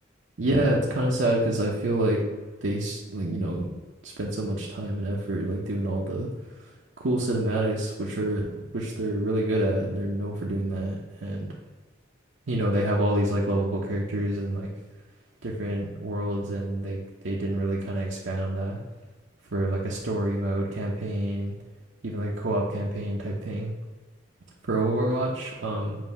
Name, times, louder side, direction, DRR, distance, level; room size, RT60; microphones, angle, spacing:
voice 1, 0.4-2.2 2.6-3.7 4.0-6.3 6.6-6.7 7.0-11.6 12.5-14.7 15.4-17.0 17.2-18.8 19.5-21.5 22.0-23.7 24.6-26.0, right 1 dB, 65° right, -3 dB, 0.8 m, -27 dB
7.5 x 2.7 x 5.4 m, 1.3 s
head